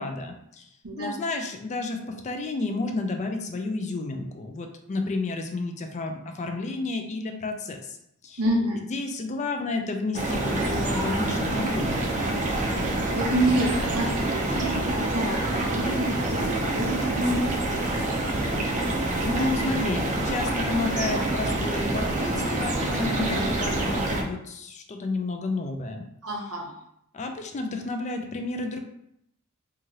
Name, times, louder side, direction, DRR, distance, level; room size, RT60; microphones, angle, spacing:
voice 1, 0.0-0.7 1.0-8.0 8.2-8.4 8.9-12.2 18.6-26.0 27.1-28.8, left 3 dB, 30° left, 4 dB, 0.3 m, -31 dB
voice 2, 0.8-1.1 8.4-8.8 13.1-17.8 19.6-19.8 26.2-26.7, right 1 dB, 75° right, -1 dB, 0.8 m, -28 dB
sound 1, 10.1-24.2, right 1 dB, 35° right, 0.5 m, -27 dB
3.0 x 2.4 x 2.7 m, 0.76 s
head